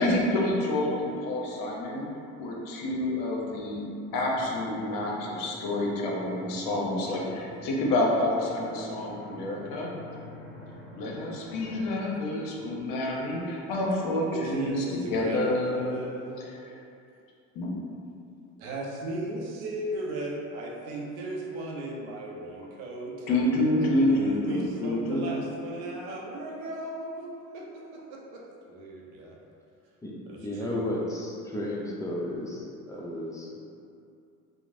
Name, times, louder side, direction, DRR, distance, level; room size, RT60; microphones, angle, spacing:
voice 1, 0.0-2.0 2.4-3.8 4.1-9.9 10.9-16.0 16.4-16.7 17.5-17.7 23.3-25.4, left 1 dB, 55° left, -2 dB, 0.6 m, -28 dB
sound 1, 4.1-11.9, equal, 30° right, 0.7 m, -47 dB
voice 2, 6.9-7.4 14.2-16.5 18.6-23.4 24.1-27.3 27.5-29.4 30.3-30.8, right 2 dB, 80° right, -1 dB, 0.6 m, -36 dB
voice 3, 30.4-33.6, left 1 dB, 10° left, -5 dB, 0.4 m, -33 dB
3.0 x 2.0 x 2.5 m, 2.5 s
hypercardioid pair, 70°, 40 cm